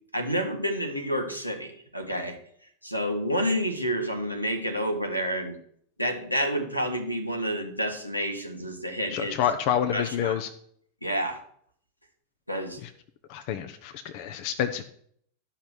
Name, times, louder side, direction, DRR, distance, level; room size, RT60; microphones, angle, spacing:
voice 1, 0.1-2.4 2.8-5.6 6.0-9.3 9.9-10.4 11.0-11.4 12.5-12.8, equal, 90° left, 5 dB, 1.6 m, -29 dB
voice 2, 9.1-10.5 12.8-12.9 13.3-14.8, left 9 dB, 45° left, 8 dB, 0.7 m, -28 dB
11.5 x 5.8 x 6.1 m, 0.63 s
figure-of-eight pair, 90°, 0 cm